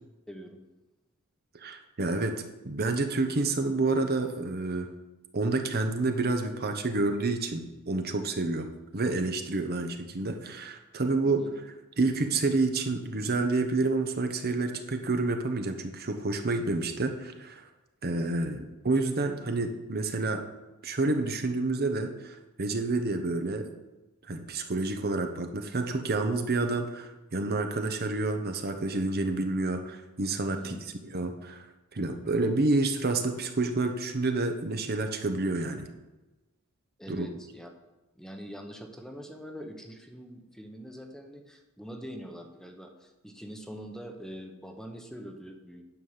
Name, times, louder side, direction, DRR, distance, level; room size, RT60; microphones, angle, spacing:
voice 1, 0.3-0.6 11.2-11.5 30.6-30.8 37.0-37.7 38.2-45.8, equal, ahead, 4 dB, 0.9 m, -43 dB
voice 2, 1.5-2.3 2.6-4.9 5.3-8.7 8.9-11.4 12.0-17.6 18.0-20.4 20.8-23.7 24.3-30.8 31.1-31.7 31.9-35.9 37.1-37.3, right 3 dB, 45° right, 6 dB, 0.9 m, -29 dB
9.6 x 5.6 x 7.3 m, 1.1 s
head